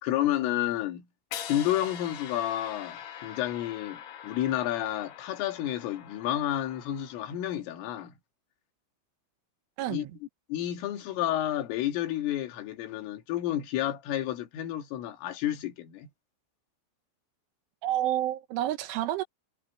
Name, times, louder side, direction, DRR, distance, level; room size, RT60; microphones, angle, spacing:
voice 1, 0.0-1.1 1.5-8.2 9.9-10.1 10.5-16.1, left 12 dB, 80° left, 4.7 m, -30 dB
sound 1, 1.3-7.4, left 9 dB, 60° left, 3.5 m, -43 dB
voice 2, 9.8-10.1 17.8-19.2, right 13 dB, 75° right, 3.6 m, -29 dB
omnidirectional pair, 5.7 m